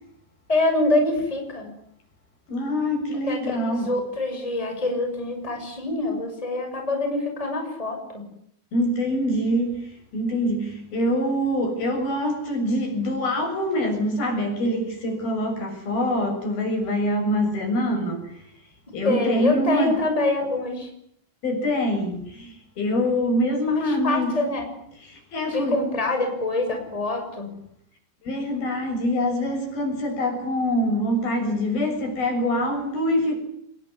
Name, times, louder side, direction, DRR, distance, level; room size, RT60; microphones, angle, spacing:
voice 1, 0.5-1.7 3.3-8.3 19.0-20.9 23.8-24.7 25.5-27.5, left 2 dB, 5° left, 4 dB, 6.1 m, -25 dB
voice 2, 2.5-3.9 8.7-9.9 10.1-18.4 18.9-20.0 21.4-24.4 25.1-25.8 28.2-33.4, equal, 55° left, 4 dB, 8.5 m, -24 dB
26.5 x 22.0 x 9.9 m, 0.71 s
omnidirectional pair, 5.0 m